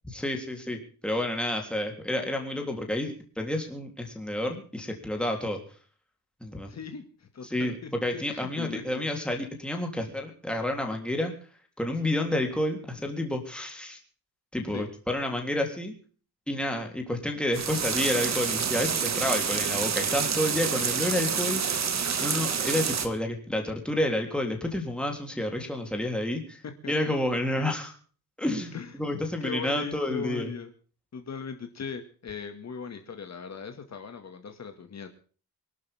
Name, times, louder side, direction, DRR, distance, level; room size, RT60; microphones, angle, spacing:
voice 1, 0.1-5.6 6.4-6.7 7.4-7.7 8.0-11.3 11.8-14.0 14.5-15.9 16.5-21.9 22.2-28.0 28.4-30.5, left 1 dB, 5° left, 2 dB, 3.4 m, -30 dB
voice 2, 6.7-9.1 14.7-14.8 26.8-26.9 28.7-30.7 31.1-35.1, left 6 dB, 45° left, 6 dB, 2.1 m, -39 dB
sound 1, 17.5-23.1, right 6 dB, 45° right, 2.0 m, -28 dB
25.5 x 12.5 x 3.6 m, 0.41 s
wide cardioid pair, 175°, 37 cm